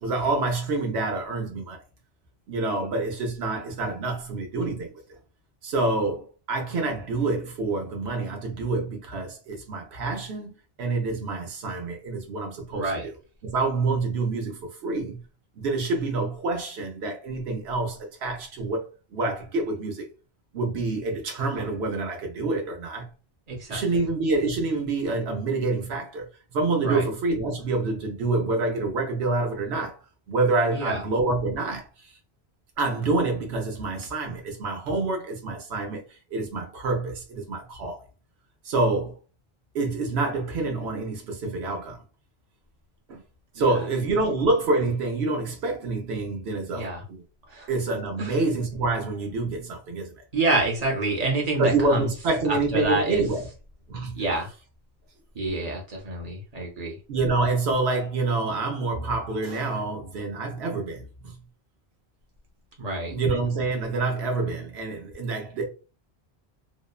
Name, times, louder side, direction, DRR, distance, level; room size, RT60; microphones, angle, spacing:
voice 1, 0.0-1.8 2.5-4.9 5.6-10.5 10.8-13.1 13.4-15.3 15.6-18.9 19.1-20.1 20.5-23.1 23.7-30.0 30.3-31.9 32.8-38.0 38.6-39.2 39.7-42.0 43.1-43.2 43.6-47.2 47.7-50.2 51.6-53.5 53.9-54.3 57.1-61.4 63.1-65.7, right 3 dB, 80° right, 1.0 m, -27 dB
voice 2, 12.7-13.1 23.5-23.8 26.8-27.0 30.7-31.0 46.7-47.0 47.5-47.7 48.2-48.3 50.3-52.1 52.5-53.2 54.1-54.5 55.3-57.0 62.8-63.2, right 2 dB, 40° right, 0.8 m, -27 dB
2.9 x 2.1 x 2.2 m
omnidirectional pair, 1.1 m